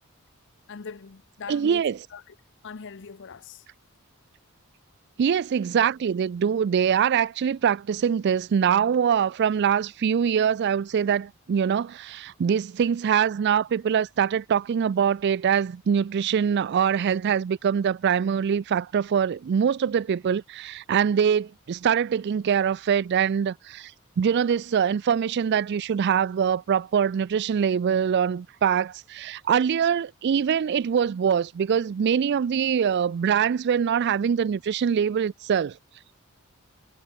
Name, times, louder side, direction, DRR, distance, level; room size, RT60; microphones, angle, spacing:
voice 1, 0.7-2.3 2.6-3.6, left 5 dB, 60° left, 0.7 m, -41 dB
voice 2, 1.5-2.0 5.2-23.9 24.2-35.8, right 7 dB, 50° right, 0.3 m, -23 dB
head